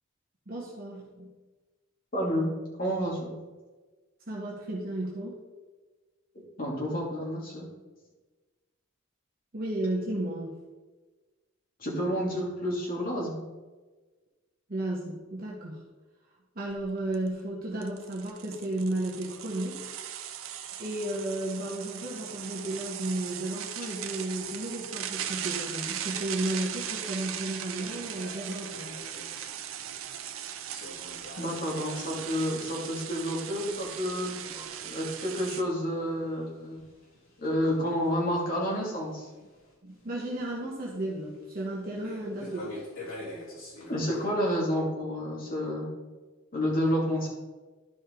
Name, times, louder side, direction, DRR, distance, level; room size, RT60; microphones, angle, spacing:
voice 1, 0.5-1.3 4.3-5.4 9.5-10.6 14.7-15.8 16.5-19.8 20.8-29.0 39.8-42.8, right 1 dB, 45° right, -5 dB, 1.5 m, -33 dB
voice 2, 2.1-2.5 2.8-3.3 6.6-7.7 11.8-13.4 31.4-34.3 34.8-36.8 37.4-39.3 43.9-45.9 46.5-47.3, equal, 45° left, -4 dB, 2.6 m, -29 dB
sound 1, 16.7-16.8 17.1-17.3 17.8-35.6, right 9 dB, 85° right, 0.7 m, -38 dB
sound 2, 25.0-44.3, left 1 dB, 80° left, 2.8 m, -49 dB
12.0 x 5.3 x 3.9 m, 1.3 s
head